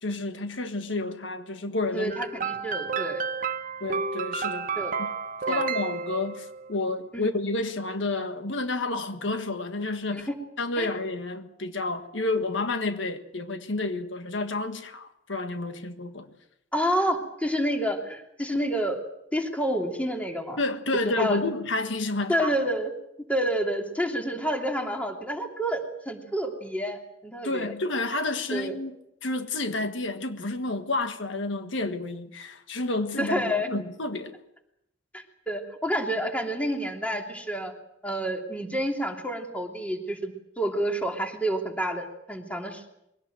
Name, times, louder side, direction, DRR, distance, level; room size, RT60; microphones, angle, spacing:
voice 1, 0.0-2.2 3.8-4.7 5.0-5.1 5.5-10.3 10.6-16.3 20.6-22.5 27.4-29.0 29.2-34.3, left 2 dB, 80° left, 1.6 m, -30 dB
voice 2, 1.9-3.2 4.8-4.9 5.5-5.6 7.1-7.3 10.1-10.2 10.8-10.9 16.7-19.0 19.3-20.6 21.1-21.4 22.3-22.9 23.3-27.7 28.5-28.8 33.2-33.7 35.1-37.7 38.0-42.9, equal, 10° left, 3.0 m, -29 dB
sound 1, 2.1-6.7, right 5 dB, 45° right, 0.9 m, -31 dB
22.5 x 17.5 x 7.8 m
head